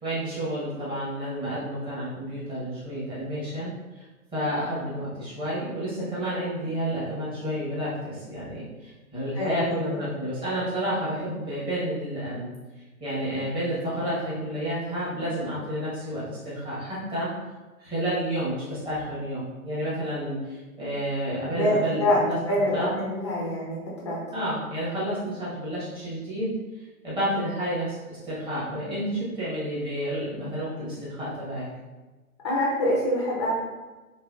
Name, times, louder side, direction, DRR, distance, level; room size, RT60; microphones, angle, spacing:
voice 1, 0.0-4.0 4.3-12.5 13.0-17.3 17.8-22.4 22.7-22.9 24.3-26.5 27.0-31.7, equal, 10° right, -10 dB, 1.1 m, -30 dB
voice 2, 9.4-10.0 21.5-22.2 22.5-23.8 24.0-24.2 32.4-33.5, left 1 dB, 20° left, -4 dB, 0.4 m, -25 dB
3.2 x 3.1 x 2.4 m, 1.2 s
figure-of-eight pair, 125°, 43 cm